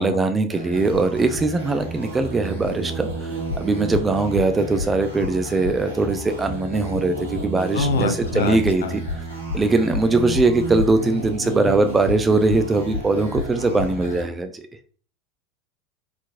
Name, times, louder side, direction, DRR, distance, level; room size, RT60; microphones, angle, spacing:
voice 1, 0.0-9.0 9.5-14.5, right 3 dB, 20° right, 8 dB, 0.5 m, -21 dB
sound 1, 0.5-14.2, equal, 85° right, 1.6 m, -30 dB
voice 2, 7.7-9.0, left 3 dB, 70° left, 9 dB, 0.5 m, -25 dB
4.3 x 3.9 x 2.5 m, 0.41 s
figure-of-eight pair, 80°, 0 cm